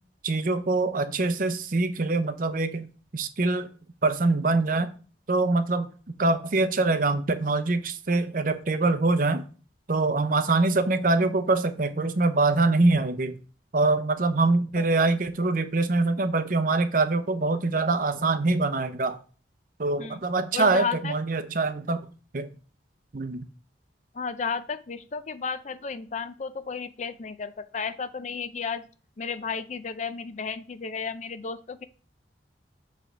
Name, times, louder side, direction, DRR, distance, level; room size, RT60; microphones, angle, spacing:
voice 1, 0.2-2.9 3.1-3.7 4.0-4.9 5.3-5.9 6.2-9.4 9.9-13.4 13.7-19.2 19.8-22.0 22.3-22.5 23.1-23.4, right 3 dB, 50° right, 10 dB, 0.7 m, -24 dB
voice 2, 20.5-21.1 24.1-28.9 29.2-31.9, left 5 dB, 40° left, 12 dB, 0.4 m, -33 dB
7.5 x 3.4 x 6.0 m, 0.38 s
head